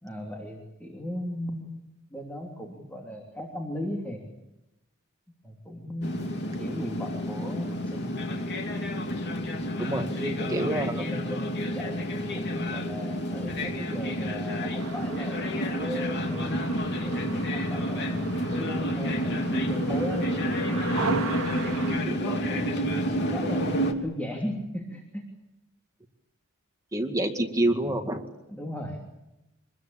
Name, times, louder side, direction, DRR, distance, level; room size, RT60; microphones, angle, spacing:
voice 1, 0.0-1.8 2.1-4.2 5.4-8.1 10.2-16.6 17.0-22.8 23.3-25.3 28.5-29.0, left 1 dB, 10° left, 1 dB, 3.1 m, -37 dB
sound 1, 6.0-23.9, equal, 55° left, 2.9 m, -29 dB
voice 2, 9.8-10.1 10.5-11.0 26.9-28.2, right 1 dB, 15° right, 4 dB, 2.0 m, -27 dB
sound 2, 14.8-22.0, right 4 dB, 90° right, 1.5 m, -38 dB
26.0 x 21.5 x 8.8 m, 0.94 s
head